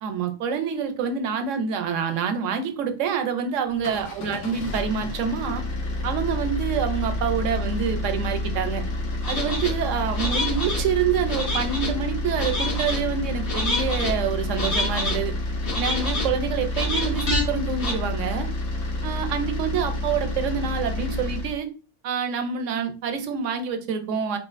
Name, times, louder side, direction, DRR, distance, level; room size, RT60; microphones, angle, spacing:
voice 1, 0.0-5.6 6.0-8.8 9.3-15.3 15.7-18.5 19.0-21.7 22.0-24.4, right 7 dB, 90° right, 7 dB, 1.0 m, -27 dB
sound 1, 3.7-21.6, left 2 dB, 80° left, 1.2 m, -29 dB
sound 2, 9.2-9.7 10.1-10.8 11.3-11.9 12.4-13.0 13.5-14.1 14.5-15.2 15.6-16.3 16.7-17.4 17.8-17.9, left 2 dB, 60° left, 1.3 m, -27 dB
4.4 x 2.4 x 2.4 m, 0.36 s
omnidirectional pair, 1.2 m